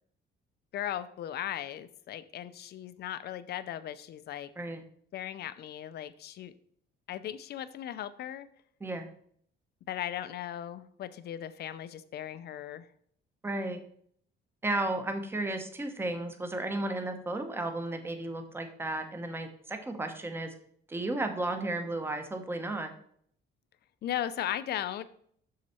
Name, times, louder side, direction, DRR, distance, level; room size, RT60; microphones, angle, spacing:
voice 1, 0.7-4.5 5.1-6.5 7.1-8.5 9.9-12.9 24.0-25.0, left 11 dB, 55° left, 13 dB, 0.6 m, -37 dB
voice 2, 13.4-13.8 14.6-20.5 20.9-22.9, right 2 dB, 10° right, 7 dB, 0.8 m, -34 dB
7.6 x 6.5 x 4.3 m, 0.63 s
cardioid pair, 170°, 20 cm